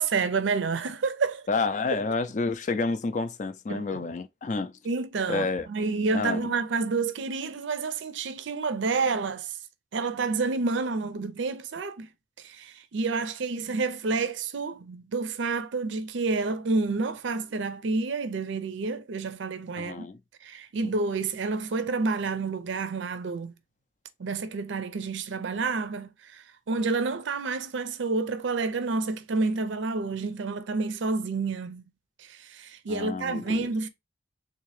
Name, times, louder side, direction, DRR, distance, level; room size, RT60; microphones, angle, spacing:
voice 1, 0.0-1.5 3.7-4.0 4.8-9.5 9.9-12.1 12.4-20.1 20.4-23.5 24.2-31.8 32.2-33.9, right 4 dB, 80° right, 0.5 m, -29 dB
voice 2, 1.5-4.8 5.3-5.7 6.1-6.5 19.8-20.2 20.8-20.9 32.9-33.7, left 3 dB, 40° left, 0.3 m, -29 dB
3.5 x 2.8 x 3.1 m
head